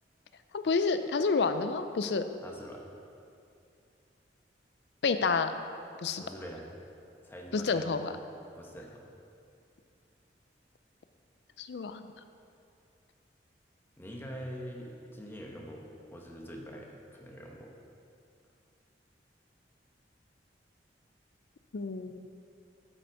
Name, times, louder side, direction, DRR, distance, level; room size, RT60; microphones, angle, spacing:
voice 1, 0.5-2.3 5.0-5.5 6.0-6.2 7.5-8.1 11.6-12.1 21.7-22.2, left 4 dB, 70° left, 10 dB, 0.4 m, -29 dB
voice 2, 2.4-2.9 6.2-6.7 7.2-7.9 8.5-9.0 14.0-15.8 16.1-17.7, equal, 15° left, -1 dB, 1.0 m, -44 dB
7.8 x 7.8 x 4.6 m, 2.5 s
head